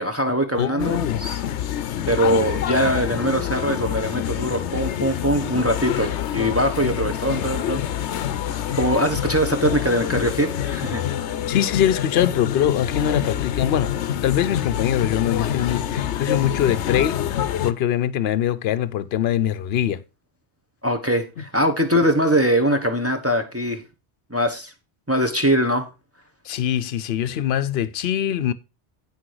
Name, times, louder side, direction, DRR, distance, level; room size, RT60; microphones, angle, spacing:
voice 1, 0.0-1.4 2.1-7.8 8.7-11.0 20.8-23.8 24.3-24.7 25.1-25.9, equal, 15° right, 1.1 m, -22 dB
voice 2, 0.5-1.2 11.5-13.9 14.2-17.2 17.6-20.0 26.5-28.5, left 10 dB, 70° left, 0.9 m, -23 dB
sound 1, 0.8-17.7, left 10 dB, 90° left, 0.9 m, -26 dB
8.9 x 6.1 x 4.7 m
omnidirectional pair, 1.1 m